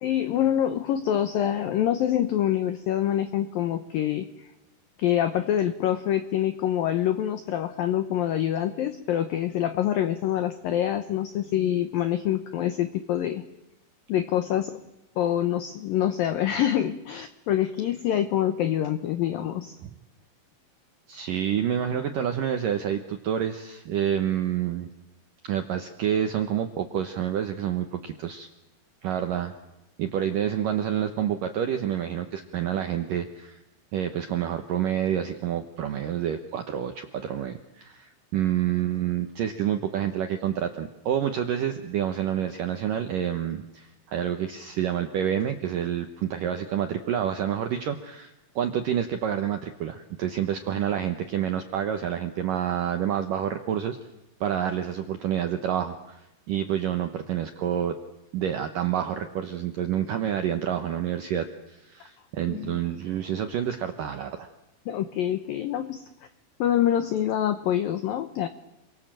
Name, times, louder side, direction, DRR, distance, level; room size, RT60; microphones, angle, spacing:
voice 1, 0.0-4.3 5.0-13.5 14.1-14.8 15.2-19.8 62.5-62.8 64.9-66.0 66.6-68.5, left 11 dB, 85° left, 10 dB, 2.0 m, -26 dB
voice 2, 21.1-24.9 25.4-28.5 29.0-29.5 30.0-33.6 33.9-54.0 54.4-56.2 56.5-58.0 58.3-64.5, right 9 dB, 75° right, 6 dB, 2.0 m, -28 dB
29.0 x 23.5 x 7.6 m, 0.93 s
omnidirectional pair, 5.6 m